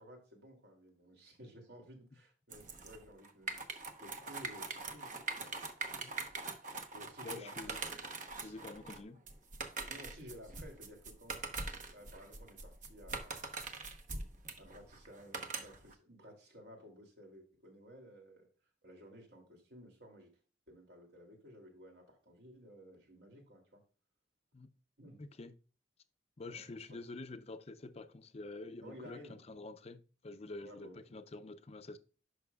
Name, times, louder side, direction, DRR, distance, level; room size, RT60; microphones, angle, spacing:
voice 1, 0.0-3.6 4.0-5.5 6.9-7.8 8.6-8.7 9.9-11.5 11.9-13.8 14.6-18.5 18.8-20.3 20.7-23.8 25.0-25.2 26.4-27.0 28.8-29.4 30.6-31.2, equal, 65° right, 2.7 m, -55 dB
sound 1, 2.5-15.9, right 3 dB, 45° right, 1.0 m, -43 dB
voice 2, 7.2-8.0 8.4-9.2 24.5-24.7 25.2-25.5 26.4-32.0, left 2 dB, 35° left, 0.5 m, -48 dB
11.0 x 5.8 x 2.3 m
head